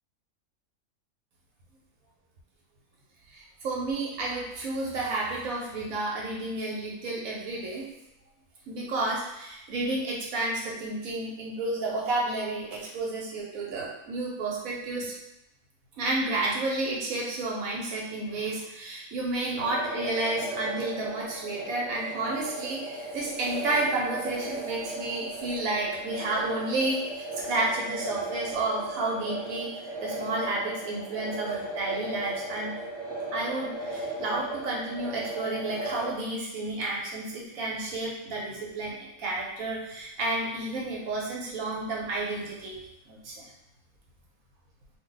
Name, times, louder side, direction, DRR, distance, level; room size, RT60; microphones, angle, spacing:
voice 1, 3.3-7.9 8.7-15.1 16.0-29.7 30.0-32.7 33.3-42.8 43.1-43.4, right 2 dB, 75° right, -3 dB, 1.1 m, -31 dB
sound 1, 19.6-36.1, right 1 dB, 35° right, 0.7 m, -36 dB
2.6 x 2.1 x 3.8 m, 0.87 s
omnidirectional pair, 1.5 m